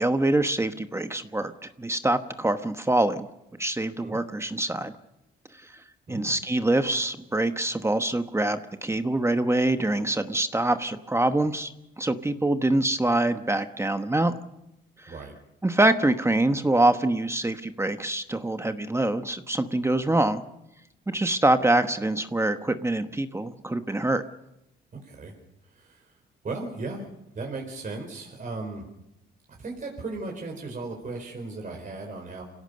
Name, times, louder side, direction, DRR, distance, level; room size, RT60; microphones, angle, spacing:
voice 1, 0.0-1.5 1.8-3.3 3.6-4.9 6.1-11.7 12.0-14.4 15.0-15.1 15.6-20.4 21.1-24.2, right 2 dB, 15° right, 8 dB, 1.1 m, -25 dB
voice 2, 24.9-25.3 25.8-26.1 26.4-27.1 27.3-28.8 29.6-32.4, right 3 dB, 40° right, 1 dB, 4.5 m, -36 dB
25.5 x 17.0 x 6.8 m, 0.88 s
cardioid pair, 90°, 20 cm